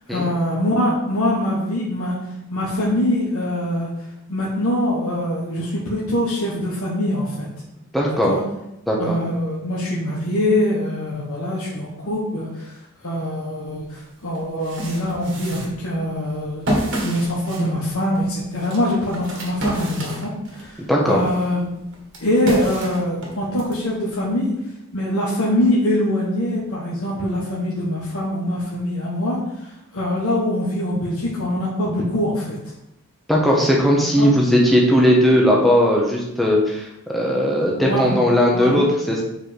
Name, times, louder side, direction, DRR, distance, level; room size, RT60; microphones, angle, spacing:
voice 1, 0.1-2.2 2.5-3.9 4.3-7.5 8.1-8.4 9.0-12.7 13.0-20.8 21.1-21.6 22.2-24.5 24.9-32.6 33.9-34.3 37.8-38.1 38.5-38.8, left 1 dB, 75° left, -6 dB, 1.3 m, -23 dB
voice 2, 7.9-8.3 8.9-9.2 20.9-21.2 33.3-39.2, equal, ahead, -3 dB, 1.0 m, -17 dB
sound 1, 13.8-13.9 14.4-20.7 21.2-23.8, right 1 dB, 55° right, 1.6 m, -29 dB
4.8 x 4.8 x 5.1 m, 0.86 s
head